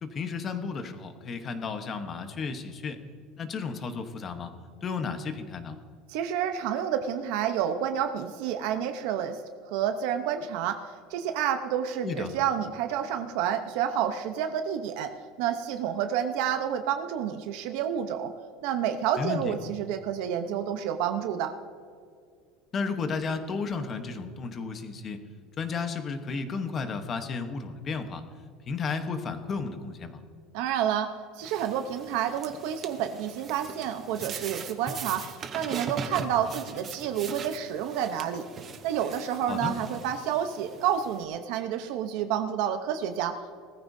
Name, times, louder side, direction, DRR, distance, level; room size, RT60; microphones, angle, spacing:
voice 1, 0.0-3.0 3.4-4.5 4.8-5.8 12.0-12.3 19.2-19.5 22.7-25.2 25.6-28.2 28.7-30.2 39.5-39.7, left 5 dB, 25° left, 8 dB, 1.0 m, -33 dB
voice 2, 6.1-9.4 9.7-10.8 11.1-15.1 15.4-18.3 18.6-21.5 30.5-38.5 38.8-43.6, right 9 dB, 60° right, 7 dB, 0.8 m, -29 dB
sound 1, 31.4-41.2, right 5 dB, 25° right, 0.9 m, -40 dB
19.5 x 14.5 x 2.7 m, 2.2 s
cardioid pair, 170°, 0 cm